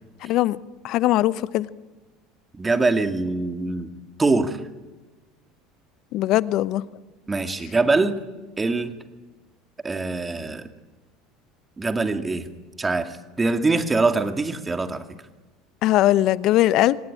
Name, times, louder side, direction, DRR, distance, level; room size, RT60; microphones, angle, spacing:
voice 1, 0.2-0.6 0.8-1.7 6.1-6.8 15.8-17.0, left 15 dB, 55° left, 0.8 m, -20 dB
voice 2, 2.6-3.9 4.2-4.6 7.3-8.2 8.6-9.0 9.8-10.7 11.8-12.5 12.8-15.0, right 3 dB, 20° right, 2.2 m, -23 dB
24.5 x 19.0 x 8.9 m
hypercardioid pair, 75°, 0 cm